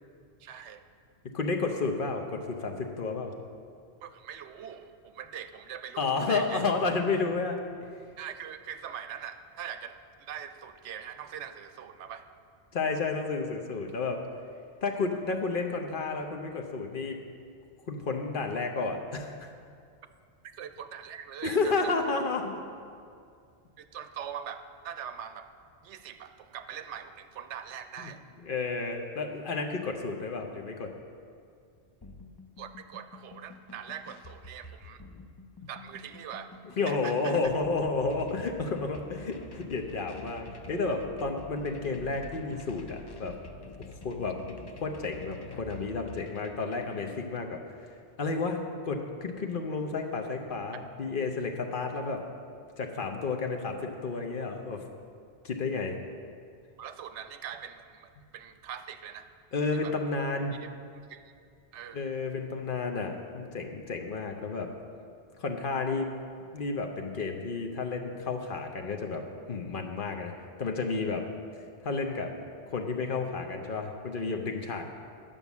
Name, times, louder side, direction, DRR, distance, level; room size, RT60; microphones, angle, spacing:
voice 1, 0.4-0.8 4.0-6.6 8.2-12.3 20.6-21.9 23.8-25.6 25.8-28.2 32.6-35.0 35.7-36.5 36.9-37.3 56.8-59.4 59.7-59.9 61.1-61.2 61.7-62.1, right 8 dB, 85° right, 9 dB, 0.9 m, -42 dB
voice 2, 1.3-3.3 6.0-7.6 12.7-14.2 14.8-17.2 17.9-19.5 21.4-22.6 28.0-28.1 28.4-30.9 36.8-43.4 43.8-47.6 48.2-52.2 52.8-54.8 55.4-56.0 59.5-60.5 61.9-64.7 65.4-66.1 66.5-70.3 70.6-71.2 71.8-72.3 72.7-74.8, left 4 dB, 55° left, 3 dB, 0.9 m, -31 dB
sound 1, 32.0-47.0, left 2 dB, 35° left, 0.4 m, -48 dB
10.0 x 5.4 x 7.1 m, 2.3 s
omnidirectional pair, 1.2 m